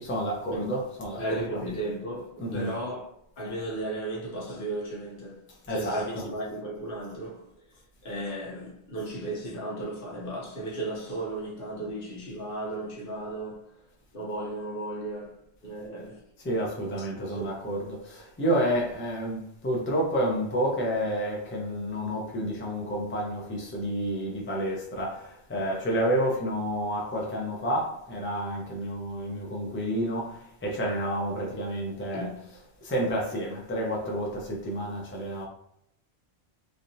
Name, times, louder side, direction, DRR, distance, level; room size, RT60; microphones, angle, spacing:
voice 1, 0.0-1.6 2.4-2.7 5.7-6.3 16.4-35.5, equal, 15° left, 0.5 m, -30 dB
voice 2, 1.2-7.5 8.0-13.7 14.1-16.2 17.0-17.5 32.1-32.4, right 1 dB, 55° left, 0.9 m, -35 dB
3.2 x 2.7 x 2.6 m
omnidirectional pair, 1.2 m